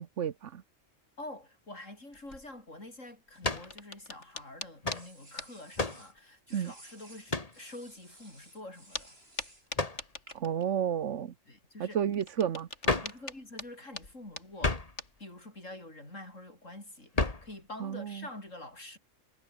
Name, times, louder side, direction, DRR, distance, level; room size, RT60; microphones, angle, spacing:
voice 1, 0.2-0.6 6.5-6.7 10.3-11.3 11.8-13.0 17.8-18.3, right 8 dB, 75° right, 1.3 m, -32 dB
voice 2, 1.2-9.2 11.5-12.0 13.0-14.8 15.2-19.0, left 1 dB, 85° left, 7.8 m, -47 dB
sound 1, 2.1-2.6 3.3-5.0 5.4-5.5 6.2-6.3 7.9-8.0 8.9-9.1 9.4-10.9 12.0-15.2, left 3 dB, 65° left, 3.8 m, -43 dB
sound 2, 3.3-4.3 4.9-6.1 6.5-9.7 10.3-10.7, right 1 dB, 55° right, 7.0 m, -56 dB
sound 3, 3.4-3.7 4.8-5.1 5.8-6.1 7.3-7.6 9.7-10.1 12.8-13.2 14.6-15.0 17.1-17.5, left 2 dB, 30° left, 2.1 m, -31 dB
omnidirectional pair, 1.3 m